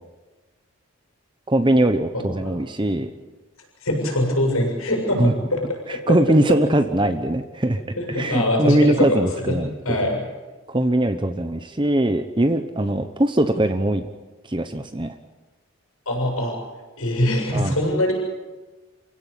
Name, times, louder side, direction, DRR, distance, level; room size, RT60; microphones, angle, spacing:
voice 1, 1.5-3.1 5.2-5.3 5.9-7.8 8.1-10.0 10.7-14.1 14.5-15.1 17.5-17.7, right 1 dB, 20° right, 8 dB, 0.9 m, -21 dB
voice 2, 2.1-2.5 3.8-5.6 5.9-6.6 8.0-9.6 9.9-10.2 16.1-16.5 17.0-18.1, left 1 dB, 80° left, -1 dB, 7.0 m, -23 dB
28.5 x 16.5 x 8.6 m, 1.2 s
head